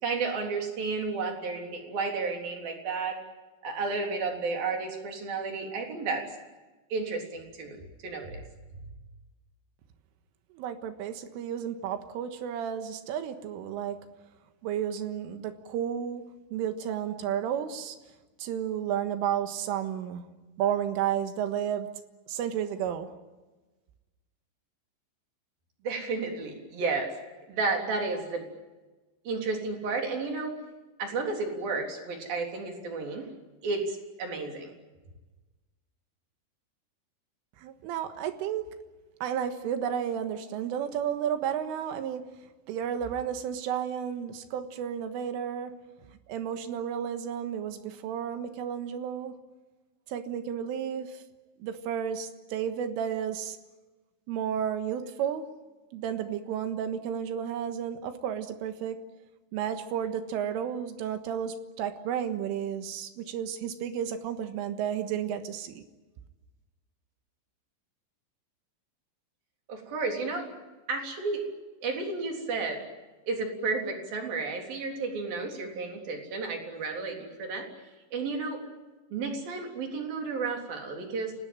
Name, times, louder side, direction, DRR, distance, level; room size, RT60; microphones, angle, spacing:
voice 1, 0.0-3.2 3.6-6.3 6.9-8.4 25.8-27.1 27.5-28.5 29.2-30.6 31.0-33.3 33.6-34.7 69.7-70.5 70.9-71.5 71.8-72.8 73.3-77.7 78.1-78.6 79.1-81.3, right 4 dB, 50° right, 2 dB, 5.1 m, -32 dB
voice 2, 10.5-14.0 14.6-16.2 16.5-18.0 18.4-20.3 20.6-21.9 22.3-23.1 37.6-38.6 39.2-42.2 42.7-45.7 46.3-49.4 50.1-51.2 51.6-53.6 54.3-55.5 55.9-59.0 59.5-65.8, right 9 dB, 80° right, 8 dB, 3.9 m, -32 dB
29.0 x 19.0 x 9.0 m, 1.2 s
omnidirectional pair, 5.7 m